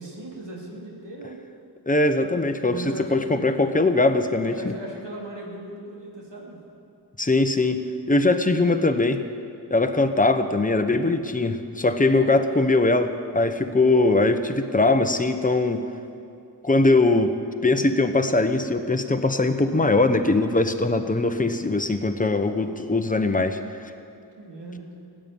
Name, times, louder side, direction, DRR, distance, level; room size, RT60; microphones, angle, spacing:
voice 1, 0.0-1.4 2.6-3.7 4.4-6.6 24.4-25.1, right 1 dB, 80° right, -3 dB, 3.3 m, -38 dB
voice 2, 1.9-2.8 3.1-4.7 7.2-9.2 9.7-15.8 16.6-17.3 17.6-23.6, left 2 dB, 20° left, 7 dB, 1.0 m, -21 dB
16.0 x 8.9 x 9.6 m, 2.6 s
wide cardioid pair, 70°, 42 cm